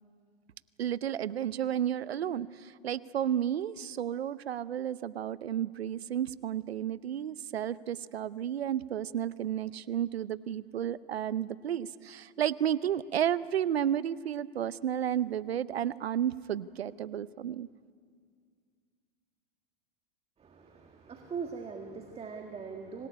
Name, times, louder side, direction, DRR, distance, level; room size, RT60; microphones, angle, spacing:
voice 1, 0.8-17.7, right 10 dB, 85° right, 18 dB, 0.8 m, -32 dB
voice 2, 20.4-23.1, right 5 dB, 20° right, 4 dB, 1.7 m, -41 dB
25.5 x 18.0 x 9.9 m, 2.2 s
hypercardioid pair, 105°, 30 cm